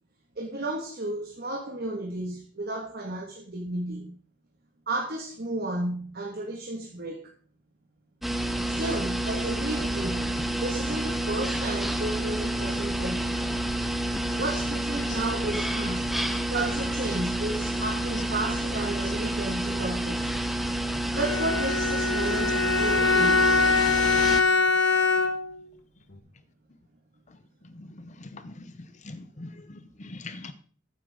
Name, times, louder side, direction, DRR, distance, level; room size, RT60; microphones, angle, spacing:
voice 1, 0.4-4.1 4.9-7.3 8.7-13.3 14.4-16.0 16.5-20.2 21.2-23.5, right 2 dB, 50° right, 1.9 m, -33 dB
sound 1, 8.2-24.4, right 1 dB, ahead, 0.9 m, -29 dB
Bowed string instrument, 21.1-25.6, left 4 dB, 60° left, 1.4 m, -23 dB
voice 2, 27.8-28.6 29.0-30.5, left 2 dB, 40° left, 0.7 m, -42 dB
13.5 x 10.0 x 3.7 m
head